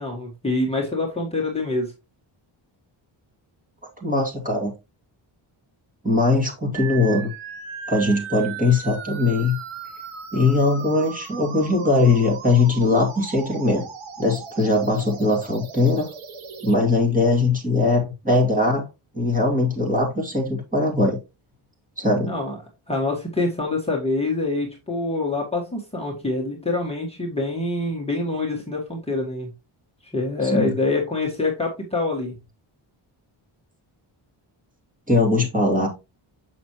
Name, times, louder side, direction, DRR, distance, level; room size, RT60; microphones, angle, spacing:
voice 1, 0.0-1.9 22.2-22.6 22.9-29.5 30.0-32.3, left 2 dB, 10° left, 1.5 m, -25 dB
voice 2, 4.0-4.7 6.0-7.3 7.9-9.6 10.3-13.9 14.2-16.1 16.6-18.8 19.1-21.2 22.0-22.3 30.4-30.7 35.1-35.9, left 2 dB, 15° right, 2.3 m, -20 dB
sound 1, 6.7-16.7, right 6 dB, 75° right, 1.4 m, -37 dB
7.2 x 6.0 x 3.0 m
wide cardioid pair, 155°, 49 cm